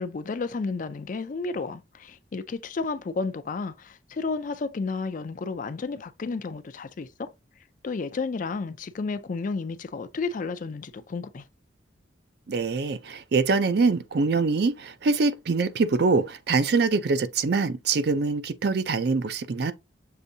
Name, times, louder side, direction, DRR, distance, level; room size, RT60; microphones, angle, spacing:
voice 1, 0.0-7.3 7.8-11.4, left 4 dB, 45° left, 0.4 m, -32 dB
voice 2, 12.5-19.7, right 4 dB, 55° right, 0.4 m, -24 dB
6.6 x 2.6 x 2.6 m
head